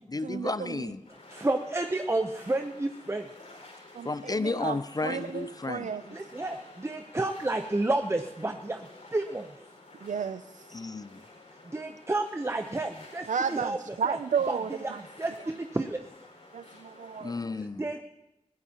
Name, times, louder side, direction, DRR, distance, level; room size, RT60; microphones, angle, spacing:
voice 1, 0.1-1.1 4.0-6.0 10.7-11.3 17.2-17.9, left 3 dB, 30° left, 15 dB, 0.4 m, -33 dB
sound 1, 1.0-17.4, left 2 dB, 70° left, 5.2 m, -52 dB
voice 2, 1.3-3.3 6.1-9.5 11.6-14.2 14.5-16.0 17.8-18.0, right 2 dB, 20° right, 6 dB, 0.7 m, -31 dB
voice 3, 3.9-4.8 5.0-6.0 10.0-10.6 13.3-15.0 16.5-17.3, right 6 dB, 80° right, 12 dB, 0.4 m, -32 dB
22.0 x 16.0 x 2.9 m, 0.91 s
wide cardioid pair, 60°, 13 cm